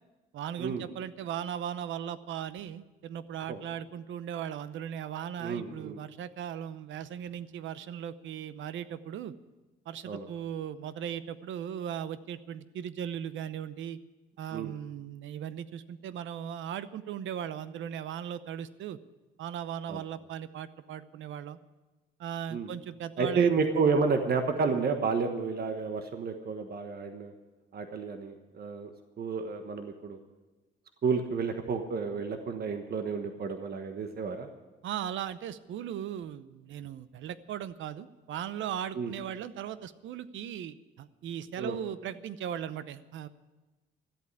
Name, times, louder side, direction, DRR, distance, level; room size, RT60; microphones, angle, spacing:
voice 1, 0.3-9.3 9.9-14.0 14.4-19.0 19.4-21.6 22.2-23.5 34.8-43.3, right 9 dB, 75° right, 15 dB, 0.7 m, -38 dB
voice 2, 5.4-6.0 10.0-10.3 14.5-14.7 19.9-20.0 22.5-22.7 23.2-27.3 27.7-30.2 31.0-34.5 39.0-39.1 41.6-41.8, right 5 dB, 50° right, 6 dB, 1.3 m, -30 dB
13.5 x 8.4 x 9.5 m, 1.2 s
cardioid pair, 90°, 20 cm